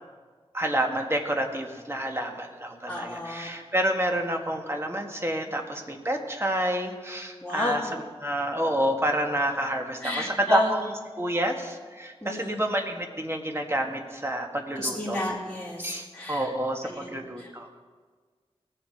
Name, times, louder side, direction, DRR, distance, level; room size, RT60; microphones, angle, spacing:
voice 1, 0.5-15.2 15.8-17.8, right 1 dB, 25° right, 3 dB, 1.7 m, -29 dB
voice 2, 2.9-3.5 7.4-7.8 10.0-10.7 12.2-12.6 14.8-16.5 16.8-17.1 17.4-17.5, left 1 dB, 5° left, -9 dB, 2.9 m, -31 dB
18.5 x 7.4 x 4.6 m, 1.5 s
wide cardioid pair, 50°, 10 cm